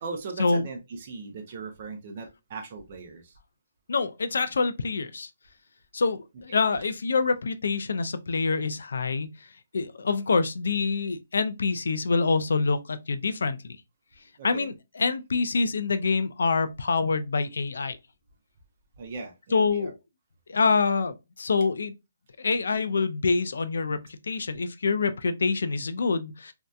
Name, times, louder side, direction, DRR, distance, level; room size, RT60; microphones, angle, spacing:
voice 1, 0.0-3.4 6.5-6.7 14.4-14.7 19.0-19.9, right 4 dB, 35° right, 0.4 m, -39 dB
voice 2, 3.9-5.3 5.9-9.3 9.7-13.8 14.4-18.0 19.5-19.9 20.5-21.9 22.4-26.5, left 4 dB, 75° left, 0.3 m, -26 dB
2.6 x 2.2 x 2.3 m
hypercardioid pair, 170°, 0 cm